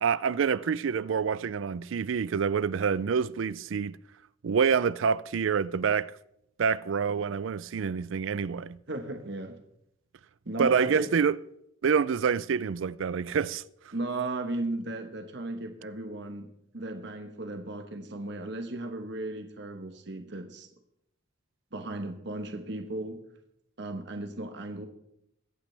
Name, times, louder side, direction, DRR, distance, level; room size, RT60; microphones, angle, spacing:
voice 1, 0.0-4.0 4.4-6.1 6.6-8.8 10.6-11.4 11.8-13.6, right 6 dB, 85° right, 0.4 m, -27 dB
voice 2, 8.9-9.6 10.4-11.1 13.9-20.7 21.7-23.2 23.8-24.9, right 2 dB, 60° right, 1.2 m, -35 dB
23.0 x 8.9 x 3.4 m
head